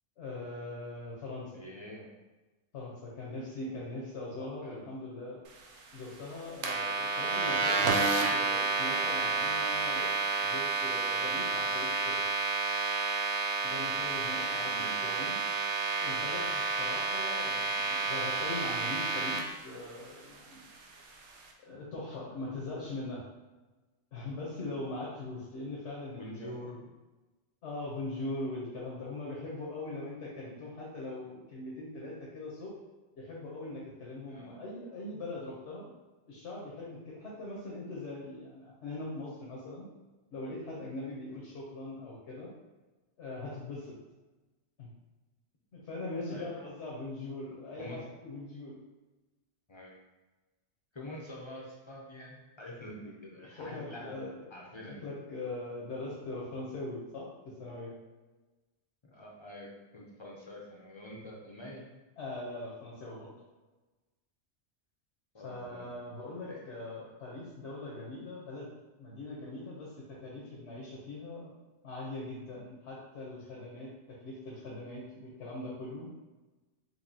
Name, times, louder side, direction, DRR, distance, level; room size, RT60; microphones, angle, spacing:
voice 1, 0.2-1.7 2.7-5.4 5.9-12.2 13.6-15.4 16.0-20.7 21.7-23.2 24.1-26.8 27.6-32.7 33.2-35.9 36.3-39.9 40.3-42.5 43.2-43.9 44.8-44.9 45.7-48.8 53.6-54.5 54.9-58.0 62.2-63.3 65.4-68.7 69.0-71.5 71.8-76.1, left 2 dB, 75° left, -5 dB, 1.1 m, -41 dB
voice 2, 1.5-2.1 4.6-4.9 14.7-15.0 26.1-26.8 34.3-34.5 46.3-46.7 47.8-48.0 49.7-50.0 50.9-55.0 59.0-61.8 65.3-65.9 66.5-66.6, left 1 dB, 35° left, -3 dB, 0.5 m, -46 dB
sound 1, 6.6-19.4, right 4 dB, 85° right, 0.9 m, -30 dB
4.5 x 2.7 x 2.7 m, 1.2 s
omnidirectional pair, 1.2 m